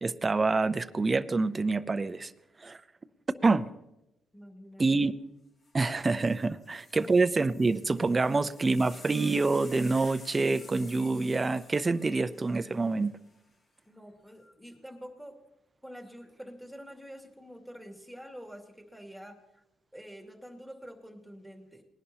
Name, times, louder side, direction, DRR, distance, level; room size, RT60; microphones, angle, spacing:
voice 1, 0.0-2.3 2.6-2.8 3.4-3.7 4.8-5.1 5.7-13.1, right 3 dB, 25° right, 13 dB, 0.5 m, -26 dB
voice 2, 4.3-5.1 6.9-7.1 13.9-15.4 15.8-19.6 19.9-21.8, equal, ahead, 3 dB, 2.4 m, -47 dB
sound 1, 5.6-5.7 6.0-13.4 14.3-14.7, left 2 dB, 45° left, 3.2 m, -52 dB
20.0 x 11.0 x 2.9 m, 0.91 s
cardioid pair, 90°, 0 cm